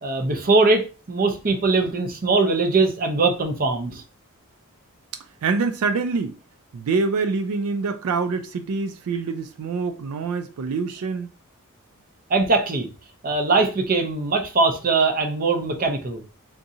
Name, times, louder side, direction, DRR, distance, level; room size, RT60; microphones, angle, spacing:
voice 1, 0.0-4.0 12.3-12.9 13.2-16.2, right 3 dB, 40° right, 0.6 m, -21 dB
voice 2, 5.4-6.3 6.7-11.3, right 4 dB, 85° right, 0.4 m, -25 dB
3.6 x 2.7 x 2.6 m
head